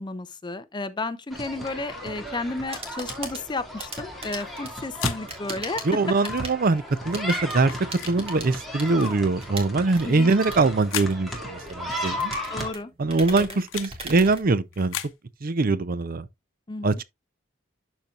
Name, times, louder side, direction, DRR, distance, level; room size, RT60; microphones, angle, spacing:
voice 1, 0.0-6.0 10.0-10.3 12.5-12.9 13.3-13.6 16.7-17.0, left 2 dB, 25° left, 0.5 m, -33 dB
sound 1, 1.3-12.7, equal, ahead, 2.1 m, -35 dB
sound 2, 2.5-15.1, right 3 dB, 30° right, 2.0 m, -40 dB
sound 3, 2.9-3.1 4.4-5.2 6.3-6.5 7.6-8.2 9.0-9.2 10.4-11.1 12.0-12.1 13.1-13.9 14.7-15.1, left 11 dB, 85° left, 0.8 m, -36 dB
voice 2, 5.8-7.7 8.1-12.4 13.0-15.0 15.4-16.3 16.8-17.0, right 3 dB, 45° right, 0.5 m, -23 dB
12.0 x 4.4 x 2.4 m
head